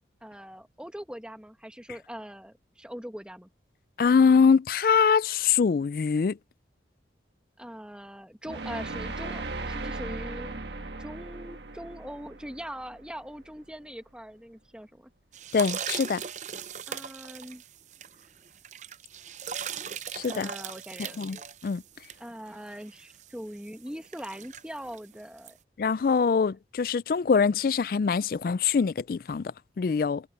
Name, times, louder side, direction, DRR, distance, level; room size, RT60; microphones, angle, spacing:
voice 1, 0.2-3.5 7.6-10.6 11.0-15.1 16.9-17.6 20.3-21.4 22.2-25.6, equal, 5° right, 1.6 m, -42 dB
voice 2, 4.0-6.4 15.5-16.2 20.1-20.5 21.2-21.4 21.6-21.8 25.8-29.5 29.8-30.2, left 5 dB, 50° left, 0.3 m, -23 dB
sound 1, 8.4-13.5, right 3 dB, 75° right, 1.5 m, -37 dB
sound 2, 15.3-25.5, right 8 dB, 40° right, 0.6 m, -39 dB
head